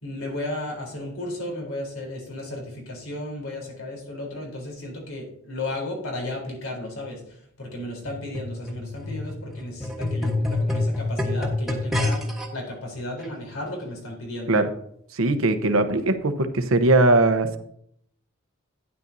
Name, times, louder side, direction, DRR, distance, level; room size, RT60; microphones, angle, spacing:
voice 1, 0.0-14.6, left 1 dB, 85° left, 0 dB, 3.7 m, -34 dB
sound 1, 8.1-12.5 13.2-13.3, left 2 dB, ahead, 1.3 m, -27 dB
voice 2, 15.1-17.6, right 2 dB, 80° right, 9 dB, 0.9 m, -20 dB
12.0 x 9.8 x 2.7 m, 0.68 s
head